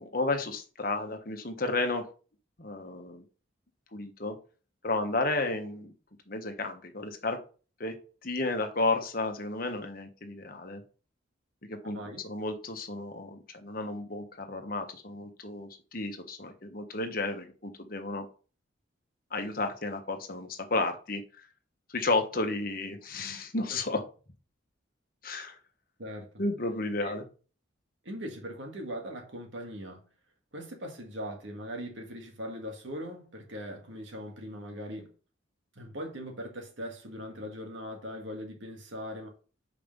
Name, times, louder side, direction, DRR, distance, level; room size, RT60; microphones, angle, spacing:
voice 1, 0.0-2.1 2.6-3.2 3.9-4.4 4.8-5.9 6.3-7.4 7.8-8.0 8.2-10.8 11.6-12.0 12.2-18.3 19.3-21.2 21.9-24.0 25.2-25.6 26.4-27.2, left 2 dB, 45° left, 1.2 m, -32 dB
voice 2, 28.0-30.0 30.5-35.1 35.8-39.3, equal, 75° right, 1.9 m, -40 dB
5.4 x 5.0 x 5.4 m
head